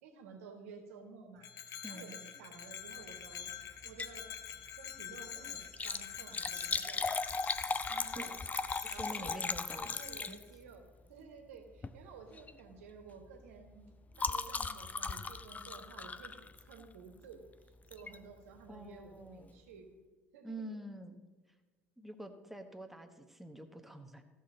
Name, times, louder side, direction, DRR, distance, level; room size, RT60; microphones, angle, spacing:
voice 1, 0.0-4.3 4.8-7.0 7.9-8.3 8.9-9.4 9.7-13.8 14.2-17.4 17.9-20.0 20.3-20.8, right 5 dB, 70° right, 4 dB, 1.5 m, -53 dB
Bell, 1.4-10.4, left 9 dB, 45° left, 0.9 m, -47 dB
Liquid, 3.8-4.2 4.6-4.7 5.6-10.7 11.7-12.0 12.3-12.6 12.9-17.0 17.9-18.2 18.7-18.8 19.0-19.1, left 4 dB, 20° left, 0.5 m, -38 dB
voice 2, 8.8-10.0 18.7-19.5 20.4-21.2 22.0-24.2, right 1 dB, 5° right, 6 dB, 1.1 m, -47 dB
15.5 x 6.2 x 3.9 m, 1.3 s
figure-of-eight pair, 60°, 8 cm